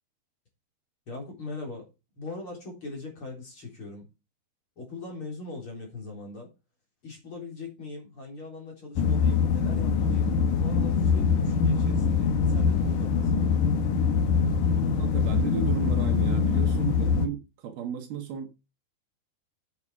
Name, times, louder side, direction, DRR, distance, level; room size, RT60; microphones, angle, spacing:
voice 1, 1.1-1.9 2.2-4.1 4.8-6.5 7.0-13.4, left 3 dB, 30° left, 4.3 m, -40 dB
sound 1, 9.0-17.3, left 5 dB, 65° left, 2.2 m, -23 dB
voice 2, 15.0-18.5, right 7 dB, 70° right, 3.2 m, -34 dB
9.3 x 7.4 x 4.8 m
omnidirectional pair, 4.8 m